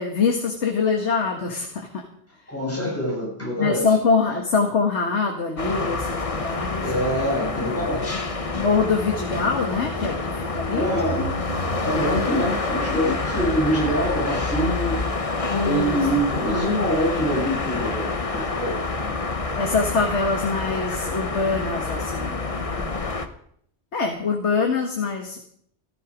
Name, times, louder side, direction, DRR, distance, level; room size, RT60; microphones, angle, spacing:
voice 1, 0.0-2.1 3.6-7.2 8.5-10.9 12.0-12.3 15.5-16.4 19.6-22.8 23.9-25.4, left 4 dB, 70° left, 3 dB, 1.9 m, -24 dB
voice 2, 2.5-3.9 6.8-8.2 10.7-11.4 11.8-15.0 15.6-19.2 22.5-22.6, equal, 10° left, -5 dB, 7.7 m, -25 dB
sound 1, 5.6-23.3, left 3 dB, 30° left, 1.1 m, -27 dB
15.0 x 14.0 x 5.1 m, 0.66 s
omnidirectional pair, 1.2 m